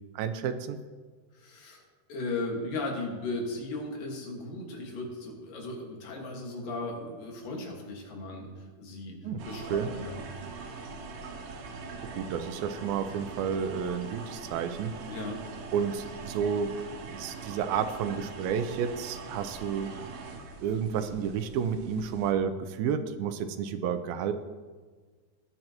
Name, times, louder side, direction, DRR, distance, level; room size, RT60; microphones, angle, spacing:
voice 1, 0.2-0.8 9.2-9.4 9.7-9.9 12.1-15.0 15.7-16.7 17.1-19.9 20.6-24.3, right 7 dB, 90° right, 9 dB, 2.5 m, -31 dB
voice 2, 1.3-1.8 2.1-9.2 9.5-10.3 10.7-10.9 15.1-15.5, left 2 dB, 70° left, 0 dB, 3.4 m, -36 dB
sound 1, 9.4-22.3, right 4 dB, 70° right, 2.5 m, -42 dB
18.5 x 9.1 x 3.0 m, 1.4 s
omnidirectional pair, 4.2 m